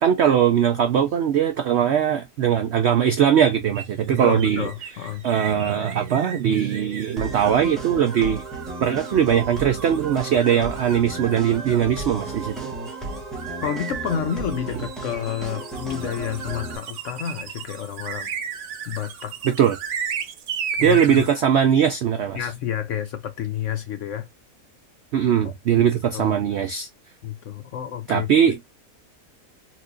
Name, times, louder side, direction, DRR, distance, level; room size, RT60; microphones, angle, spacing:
voice 1, 0.0-4.7 5.2-8.4 8.8-12.6 19.4-19.8 20.8-22.5 25.1-26.9 28.1-28.7, right 9 dB, 80° right, 0.6 m, -20 dB
sound 1, 3.7-21.4, right 7 dB, 60° right, 0.9 m, -36 dB
voice 2, 4.1-5.3 13.6-18.3 18.9-19.4 20.8-21.3 22.3-24.3 25.4-25.9 26.1-26.4 27.2-28.3, left 9 dB, 65° left, 0.8 m, -30 dB
sound 2, 7.2-16.8, right 2 dB, ahead, 0.8 m, -34 dB
4.2 x 2.6 x 2.5 m
omnidirectional pair, 1.7 m